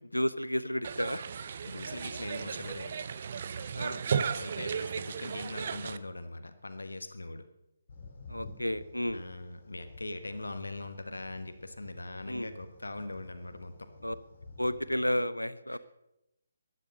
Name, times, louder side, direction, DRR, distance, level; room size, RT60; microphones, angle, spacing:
voice 1, 0.1-1.2 3.7-4.0 8.3-9.2 12.3-12.5 14.0-14.2 14.6-15.8, equal, 90° left, 15 dB, 0.8 m, -31 dB
sound 1, 0.8-6.0, right 6 dB, 45° right, 0.7 m, -35 dB
voice 2, 1.6-2.9 4.2-7.5 9.1-13.9 15.7-15.8, left 2 dB, 70° left, 9 dB, 1.4 m, -41 dB
sound 2, 7.9-15.2, left 3 dB, 50° left, 3.6 m, -51 dB
14.5 x 10.5 x 6.5 m, 0.89 s
figure-of-eight pair, 140°, 0 cm